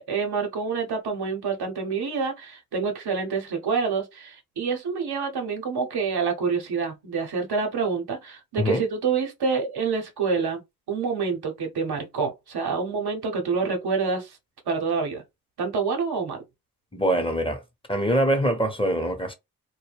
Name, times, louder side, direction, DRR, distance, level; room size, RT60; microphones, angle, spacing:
voice 1, 0.1-10.6 10.9-14.4 14.7-15.2 15.6-16.4, right 5 dB, 75° right, 0.9 m, -27 dB
voice 2, 16.9-17.6 17.9-19.3, right 1 dB, 15° left, 0.9 m, -23 dB
2.2 x 2.1 x 3.3 m
supercardioid pair, 40°, 40 cm